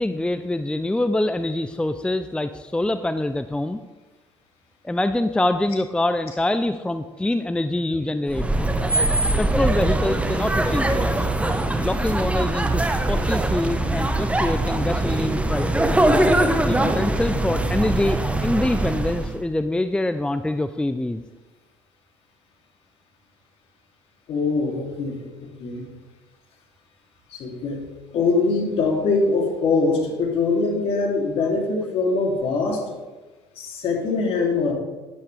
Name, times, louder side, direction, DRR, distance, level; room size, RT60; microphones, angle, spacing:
voice 1, 0.0-3.8 4.8-8.5 9.4-11.3 11.8-16.0 16.6-21.2, left 1 dB, 10° left, 11 dB, 0.6 m, -25 dB
sound 1, 8.3-19.4, right 1 dB, 10° right, 1.2 m, -22 dB
voice 2, 24.3-25.9 27.3-27.8 28.1-33.0 33.6-34.7, left 3 dB, 55° left, 0 dB, 3.1 m, -23 dB
12.5 x 11.0 x 3.4 m, 1.2 s
hypercardioid pair, 60°, 12 cm